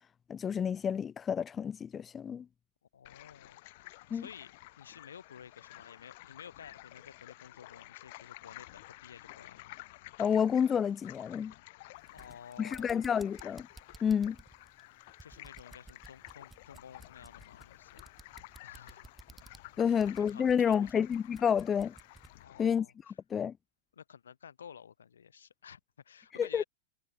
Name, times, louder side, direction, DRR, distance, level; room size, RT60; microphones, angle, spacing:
voice 1, 0.3-2.5 4.1-4.2 10.2-11.5 12.6-13.7 14.0-14.4 19.8-21.9 22.6-23.5 26.4-26.6, left 7 dB, 20° left, 0.4 m, -29 dB
voice 2, 2.9-3.6 4.1-9.7 12.1-13.1 15.2-18.0 18.6-19.1 19.8-21.0 22.4-23.2 23.9-26.6, left 7 dB, 70° left, 4.8 m, -52 dB
sound 1, 3.0-22.7, left 21 dB, 50° left, 7.4 m, -53 dB
sound 2, 12.0-22.4, right 3 dB, 10° right, 5.6 m, -56 dB
figure-of-eight pair, 90°, 0 cm